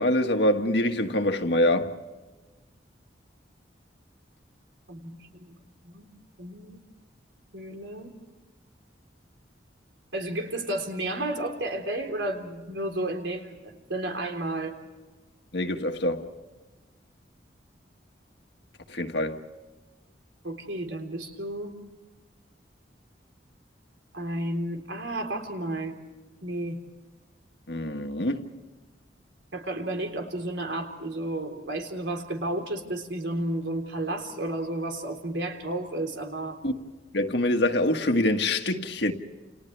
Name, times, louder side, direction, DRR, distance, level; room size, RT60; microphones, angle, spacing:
voice 1, 0.0-1.9 15.5-16.3 18.9-19.4 27.7-28.5 36.6-36.8 37.1-39.1, left 1 dB, 65° left, 1.7 m, -25 dB
voice 2, 4.9-5.6 5.8-6.1 6.4-6.8 7.5-8.2 10.1-14.8 20.4-21.8 24.1-26.0 26.4-26.8 29.5-36.6, right 1 dB, 80° right, 3.7 m, -32 dB
29.5 x 29.5 x 3.4 m
head